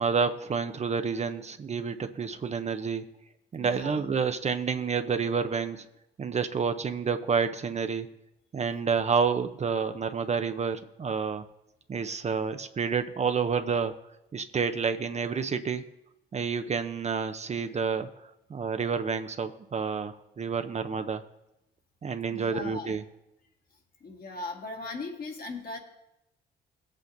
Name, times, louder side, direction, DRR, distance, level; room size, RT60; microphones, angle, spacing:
voice 1, 0.0-3.0 3.5-5.8 6.2-8.1 8.5-11.4 11.9-13.9 14.3-15.8 16.3-18.1 18.5-21.2 22.0-23.0, right 5 dB, 35° right, 8 dB, 0.6 m, -29 dB
voice 2, 3.6-3.9 22.3-23.0 24.0-25.8, left 3 dB, 50° left, 1 dB, 1.8 m, -38 dB
17.0 x 8.3 x 2.6 m, 0.88 s
cardioid pair, 90°, 20 cm